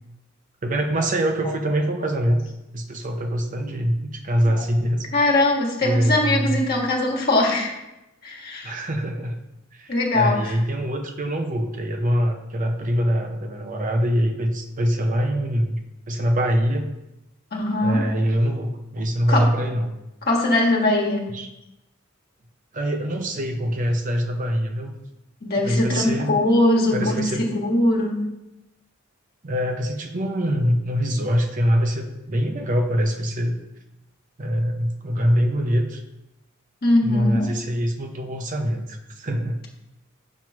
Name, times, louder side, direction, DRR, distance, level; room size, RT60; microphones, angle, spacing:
voice 1, 0.6-2.5 2.7-5.1 5.8-6.6 8.6-9.4 9.7-15.8 16.1-16.9 17.8-19.9 21.3-21.5 22.7-24.9 25.6-26.3 26.9-27.5 29.4-33.6 34.4-36.0 37.0-39.6, equal, 40° right, 4 dB, 0.6 m, -24 dB
voice 2, 5.1-7.7 8.2-8.7 9.9-10.6 17.5-18.0 19.3-19.5 20.2-21.3 25.4-28.3 36.8-37.5, left 2 dB, 50° left, -2 dB, 1.5 m, -21 dB
7.3 x 3.0 x 6.0 m, 0.93 s
head